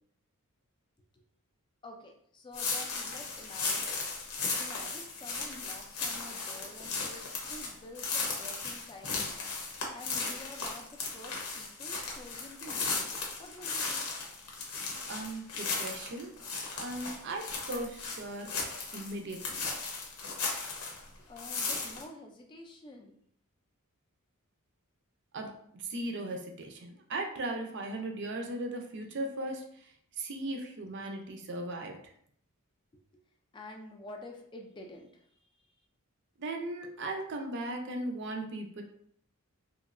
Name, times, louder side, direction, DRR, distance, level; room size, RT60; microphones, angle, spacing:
voice 1, 1.8-4.1 4.6-14.1 21.3-23.2 32.9-33.2 33.5-35.4, left 2 dB, 20° left, 2 dB, 0.3 m, -49 dB
sound 1, 2.5-21.0 21.4-22.0, left 4 dB, 85° left, 0.7 m, -36 dB
voice 2, 15.1-16.4 16.8-18.5 18.9-19.7 25.3-32.0 36.4-38.8, right 2 dB, 50° right, 3 dB, 0.5 m, -38 dB
3.0 x 2.7 x 2.4 m, 0.67 s
head